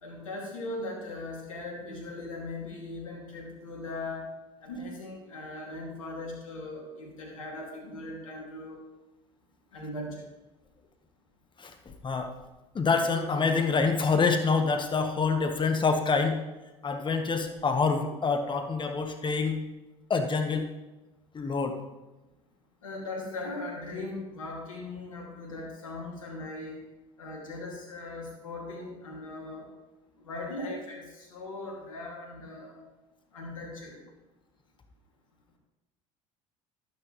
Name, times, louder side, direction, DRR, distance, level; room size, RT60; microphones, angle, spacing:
voice 1, 0.0-4.3 4.6-8.8 9.7-10.3 22.8-26.8 27.2-29.7 30.2-32.8 33.3-34.0, left 2 dB, 85° left, 0 dB, 2.6 m, -39 dB
voice 2, 11.6-12.3 12.7-16.4 16.8-19.6 20.1-20.7 21.3-21.8, left 4 dB, 30° left, 5 dB, 1.4 m, -26 dB
12.0 x 9.9 x 3.3 m, 1.0 s
hypercardioid pair, 70°, 17 cm